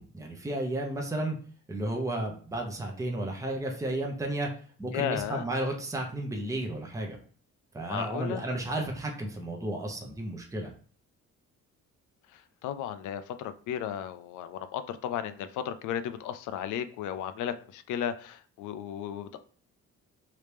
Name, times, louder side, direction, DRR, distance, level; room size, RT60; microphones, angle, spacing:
voice 1, 0.0-1.4 1.7-4.5 4.8-7.2 7.7-10.7, right 1 dB, 10° right, 0 dB, 0.8 m, -33 dB
voice 2, 4.9-5.5 7.9-8.4 12.3-19.4, left 9 dB, 80° left, 12 dB, 0.5 m, -34 dB
3.2 x 2.8 x 3.3 m, 0.43 s
cardioid pair, 90°, 30 cm